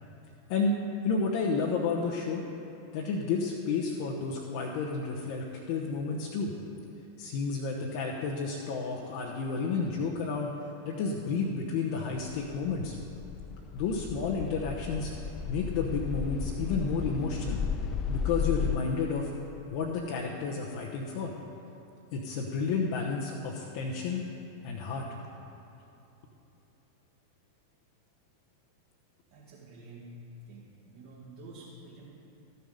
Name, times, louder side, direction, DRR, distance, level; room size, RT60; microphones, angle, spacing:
voice 1, 1.0-2.4 2.9-6.5 7.2-10.5 10.8-13.0 13.7-15.1 15.5-17.6 18.1-19.3 19.7-21.3 22.1-24.3 24.6-25.1, left 4 dB, 45° left, -1 dB, 0.9 m, -31 dB
sound 1, 12.4-18.8, left 6 dB, 30° left, 0.5 m, -34 dB
voice 2, 29.3-30.1 30.5-30.7 30.9-32.1, right 3 dB, 50° right, -8 dB, 2.2 m, -48 dB
13.5 x 6.8 x 5.1 m, 3.0 s
figure-of-eight pair, 90°, 0 cm